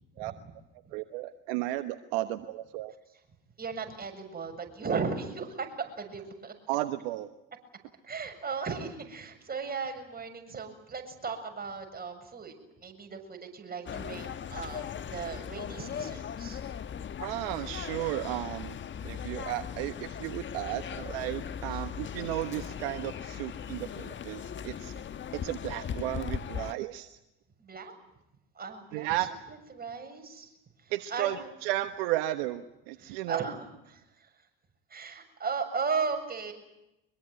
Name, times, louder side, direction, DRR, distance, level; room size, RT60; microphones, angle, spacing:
voice 1, 0.2-0.5 3.6-6.5 8.0-16.6 21.7-21.8 27.6-27.9 28.5-30.5 30.8-31.5 33.0-34.4 34.9-36.5, right 5 dB, 30° right, 5 dB, 7.3 m, -36 dB
voice 2, 0.9-2.9 6.7-7.3 17.2-18.8 19.0-24.9 25.3-27.2 28.9-29.3 30.9-31.4 31.6-33.4, right 16 dB, 75° right, 9 dB, 1.2 m, -34 dB
sound 1, 13.9-26.7, left 8 dB, 40° left, 1.3 m, -38 dB
24.5 x 22.5 x 9.5 m, 0.89 s
hypercardioid pair, 65°, 30 cm